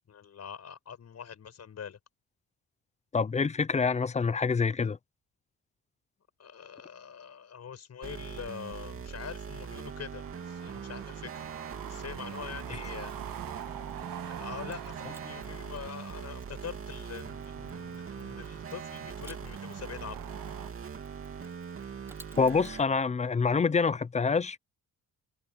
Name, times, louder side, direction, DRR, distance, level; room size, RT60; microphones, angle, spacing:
voice 1, 0.1-2.0 6.4-11.5 11.9-13.1 14.2-20.3, left 7 dB, 45° left, 6.3 m, -44 dB
voice 2, 3.1-5.0 22.4-24.6, left 5 dB, 20° left, 0.5 m, -26 dB
sound 1, 8.0-22.8, right 6 dB, 35° right, 2.7 m, -41 dB
sound 2, 10.2-20.7, right 11 dB, 70° right, 2.0 m, -45 dB
Mechanisms, 12.3-14.2 14.7-22.8, right 1 dB, 5° right, 5.1 m, -60 dB
cardioid pair, 145°, 36 cm